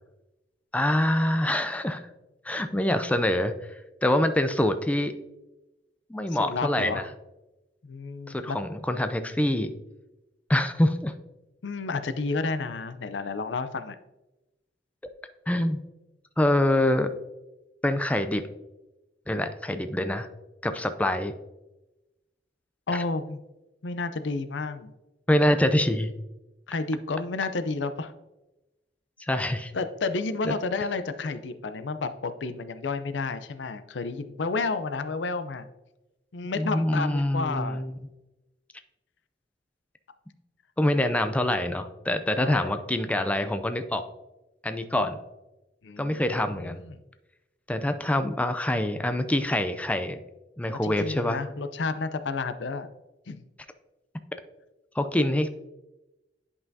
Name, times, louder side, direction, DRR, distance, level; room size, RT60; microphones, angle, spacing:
voice 1, 0.7-2.1 2.4-3.6 4.0-5.1 6.1-7.1 8.3-9.7 10.5-11.1 15.5-15.8 16.4-17.1 17.8-18.4 19.3-20.3 20.6-21.3 22.9-23.0 25.3-26.1 29.2-29.7 30.4-30.5 36.6-37.9 40.8-44.0 44.6-45.2 46.0-46.8 47.7-50.2 50.6-51.4 55.0-55.5, left 1 dB, 10° left, 9 dB, 0.4 m, -25 dB
voice 2, 6.3-7.0 7.8-8.6 11.6-14.0 22.9-23.4 23.8-24.9 26.7-28.1 29.7-35.7 36.3-37.8 42.4-42.7 45.8-46.9 50.8-52.9 53.3-53.4, left 3 dB, 75° left, 11 dB, 0.5 m, -31 dB
10.0 x 5.5 x 2.7 m, 1.0 s
head